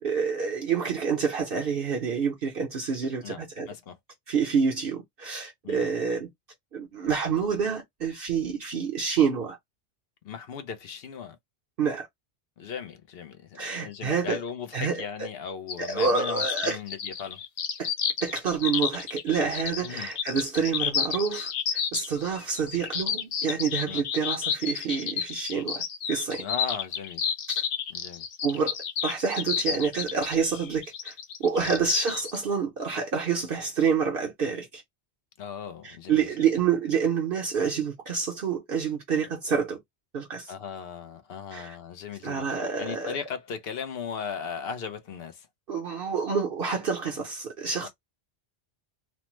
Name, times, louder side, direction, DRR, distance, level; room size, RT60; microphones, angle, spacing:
voice 1, 0.0-3.7 4.3-6.3 6.7-9.6 11.8-12.1 13.6-14.4 14.7-15.3 15.8-16.8 17.8-17.9 18.2-25.8 26.1-26.5 27.5-27.6 28.4-28.8 29.0-31.1 31.4-34.8 35.8-39.8 40.1-40.5 41.5-41.8 42.2-43.1 45.7-47.9, right 6 dB, 55° right, 0.9 m, -28 dB
voice 2, 10.2-11.4 12.6-17.4 19.8-20.1 23.9-24.0 26.4-27.2 27.9-28.3 35.4-36.3 40.5-45.5 47.8-47.9, left 6 dB, 65° left, 0.8 m, -37 dB
sound 1, 15.7-32.4, left 7 dB, 85° left, 1.0 m, -31 dB
3.1 x 2.1 x 3.0 m
omnidirectional pair, 1.2 m